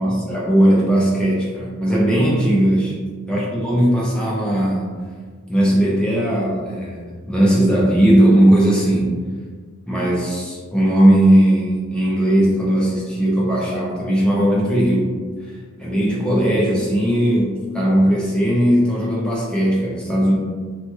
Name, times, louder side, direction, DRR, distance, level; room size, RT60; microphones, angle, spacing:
voice 1, 0.0-3.0 3.3-4.9 5.5-9.2 9.9-15.1 15.5-20.3, right 1 dB, 5° left, -6 dB, 0.6 m, -18 dB
2.8 x 2.3 x 3.0 m, 1.6 s
head